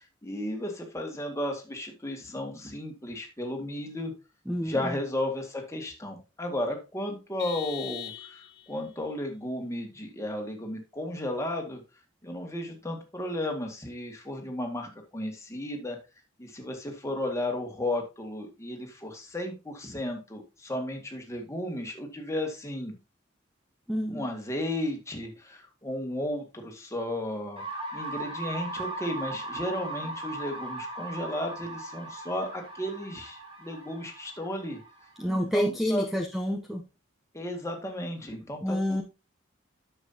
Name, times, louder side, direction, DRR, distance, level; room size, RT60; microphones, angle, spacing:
voice 1, 0.0-4.1 4.6-11.8 12.2-16.0 16.4-22.9 24.1-27.6 27.9-34.8 35.3-36.1 37.3-39.0, left 1 dB, 15° left, 2 dB, 2.0 m, -34 dB
voice 2, 4.5-4.9 23.9-24.3 35.2-36.8 38.6-39.0, equal, ahead, 3 dB, 0.7 m, -28 dB
Vehicle horn car horn honking, 7.4-8.8, left 10 dB, 60° left, 1.1 m, -40 dB
sound 1, 27.6-35.4, right 2 dB, 30° right, 3.0 m, -38 dB
9.5 x 7.4 x 2.8 m, 0.28 s
head